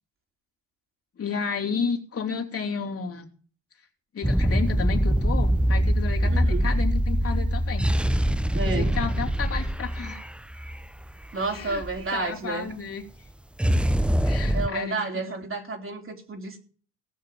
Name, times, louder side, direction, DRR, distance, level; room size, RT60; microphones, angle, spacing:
voice 1, 1.2-3.3 4.1-7.9 8.6-10.3 11.3-11.8 12.1-13.0 14.2-15.0, left 6 dB, 40° left, 2 dB, 3.2 m, -32 dB
sound 1, 4.2-12.0 13.6-14.7, equal, 5° right, 0.6 m, -23 dB
voice 2, 6.2-6.7 8.5-9.0 11.3-12.7 14.5-16.6, right 3 dB, 35° right, 3 dB, 3.6 m, -31 dB
17.5 x 6.6 x 7.6 m, 0.42 s
hypercardioid pair, 65°, 35 cm